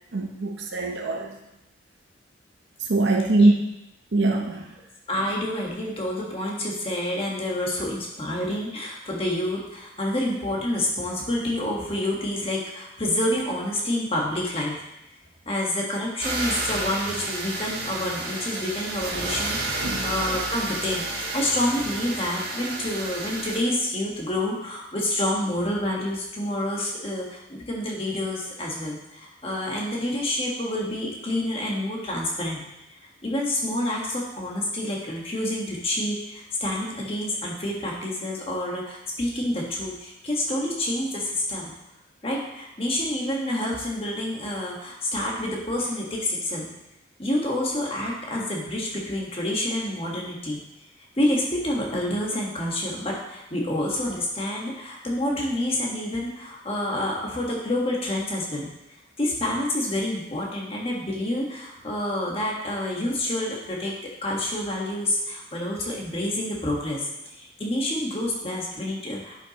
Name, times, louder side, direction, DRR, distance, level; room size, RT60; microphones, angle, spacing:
voice 1, 0.1-1.4 2.8-3.5 4.1-4.7 19.7-20.1, right 2 dB, 65° right, 2 dB, 0.7 m, -22 dB
voice 2, 5.1-14.8 15.5-32.6 32.9-41.7 42.2-46.7 47.2-50.6 51.2-58.7 59.2-63.9 64.2-69.4, left 1 dB, 30° left, -2 dB, 1.4 m, -28 dB
sound 1, 16.2-23.6, right 2 dB, 50° right, 1.4 m, -31 dB
9.9 x 5.7 x 3.0 m, 0.89 s
head